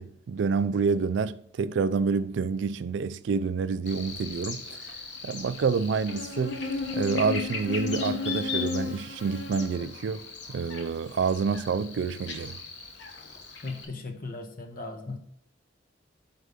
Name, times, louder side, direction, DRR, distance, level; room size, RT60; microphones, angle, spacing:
voice 1, 0.0-5.0 5.2-6.6 6.9-12.6, right 5 dB, 70° right, 0.3 m, -28 dB
Buzz, 3.9-13.9, left 4 dB, 70° left, 1.1 m, -35 dB
voice 2, 13.6-15.2, left 3 dB, 45° left, 0.6 m, -37 dB
5.3 x 5.0 x 5.0 m
head